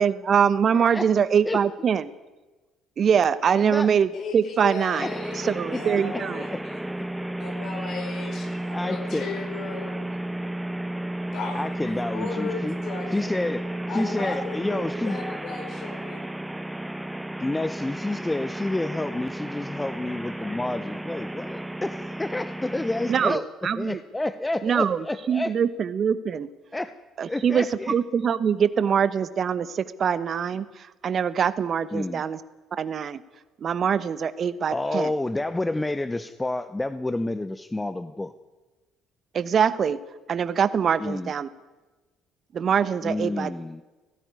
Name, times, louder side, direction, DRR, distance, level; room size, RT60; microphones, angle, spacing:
voice 1, 0.0-2.1 3.0-4.1 4.3-5.1 5.4-6.4 23.1-24.0 24.6-26.5 27.2-32.4 32.8-33.2 33.6-35.1 39.3-40.0 40.3-41.5 42.5-43.5, right 7 dB, 50° right, 15 dB, 1.1 m, -23 dB
voice 2, 0.7-1.1 1.4-1.6 3.6-3.9 5.0-5.1 5.7-5.8 6.1-6.2 6.5-6.6 8.7-9.3 11.5-12.8 13.1-13.6 13.9-15.2 17.4-23.5 23.8-25.5 26.7-26.9 27.3-27.9 31.9-32.2 34.7-38.3 41.0-41.3 43.0-43.8, left 2 dB, 15° left, 12 dB, 1.0 m, -29 dB
voice 3, 4.1-6.5 7.2-10.1 11.3-13.4 13.9-14.8 15.1-16.2, left 4 dB, 60° left, 4 dB, 5.4 m, -36 dB
sound 1, 5.0-23.4, right 1 dB, 5° right, 0.7 m, -33 dB
17.5 x 16.0 x 9.7 m, 1.2 s
hypercardioid pair, 55°, 0 cm